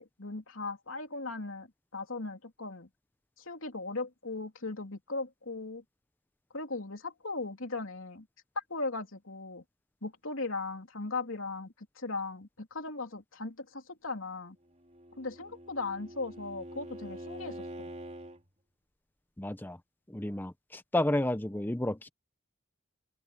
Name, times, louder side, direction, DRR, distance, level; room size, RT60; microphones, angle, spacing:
voice 1, 0.0-1.7 1.9-2.9 3.4-5.8 6.5-8.3 8.5-9.6 10.0-14.6 15.2-17.9, left 3 dB, 70° left, 3.3 m, -38 dB
Bowed string instrument, 14.7-18.4, right 1 dB, 35° right, 3.6 m, -45 dB
voice 2, 19.4-19.8 20.1-22.1, left 1 dB, 10° left, 0.6 m, -31 dB
open air
head